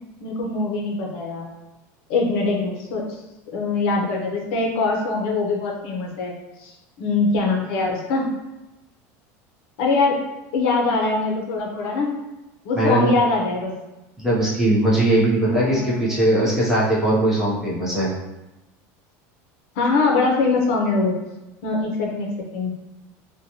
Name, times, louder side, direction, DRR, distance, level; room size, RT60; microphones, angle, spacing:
voice 1, 0.2-1.5 2.1-3.0 3.5-6.3 6.6-6.7 7.0-8.3 9.8-10.2 10.5-12.1 12.6-13.7 15.4-16.4 19.8-21.1 21.6-22.7, left 3 dB, 65° left, 0 dB, 0.6 m, -23 dB
voice 2, 12.8-13.1 14.2-18.1, right 1 dB, 5° right, -7 dB, 0.6 m, -20 dB
2.8 x 2.2 x 2.7 m, 1.0 s
cardioid pair, 170°, 7 cm